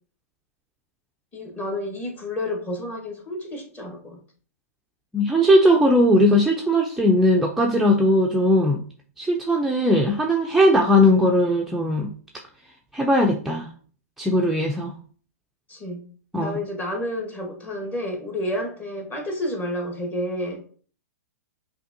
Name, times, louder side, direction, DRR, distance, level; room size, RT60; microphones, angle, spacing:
voice 1, 1.3-4.2 15.7-16.1 16.4-20.6, left 1 dB, 20° left, 1.3 m, -30 dB
voice 2, 5.1-8.8 9.2-12.1 12.9-13.7 14.2-14.9 16.3-16.6, equal, ahead, 0.4 m, -19 dB
5.7 x 2.8 x 2.6 m
hypercardioid pair, 125°, 9 cm